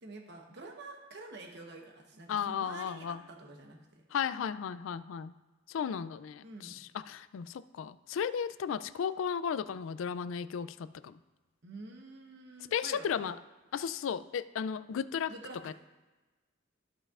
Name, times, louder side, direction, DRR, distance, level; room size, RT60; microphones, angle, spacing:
voice 1, 0.0-4.0 6.4-6.9 11.6-13.3 15.3-15.7, right 2 dB, 60° right, 2 dB, 1.0 m, -48 dB
voice 2, 2.3-3.2 4.1-5.3 5.7-11.2 12.7-13.4 13.7-15.3 15.6-15.7, left 7 dB, 75° left, 15 dB, 0.3 m, -35 dB
14.0 x 5.3 x 2.4 m, 1.2 s
head